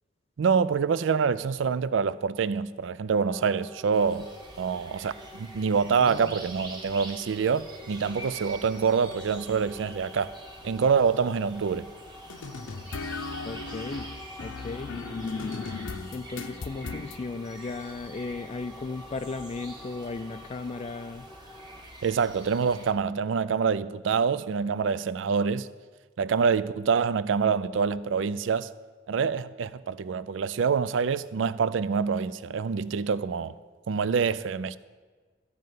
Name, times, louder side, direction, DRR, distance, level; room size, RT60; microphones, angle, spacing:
voice 1, 0.4-4.3 4.6-10.3 10.6-11.9 22.0-25.7 26.2-28.7 29.1-33.5 33.9-34.8, right 6 dB, 75° right, 0.4 m, -26 dB
sound 1, 3.2-21.8, left 2 dB, 5° left, 0.9 m, -49 dB
sound 2, 3.9-22.9, right 1 dB, 20° right, 1.4 m, -46 dB
voice 2, 5.9-6.4 13.4-14.1 14.4-15.7 16.1-21.3, left 3 dB, 30° left, 0.3 m, -36 dB
sound 3, 12.3-17.2, left 4 dB, 80° left, 0.7 m, -37 dB
14.0 x 5.4 x 9.3 m
head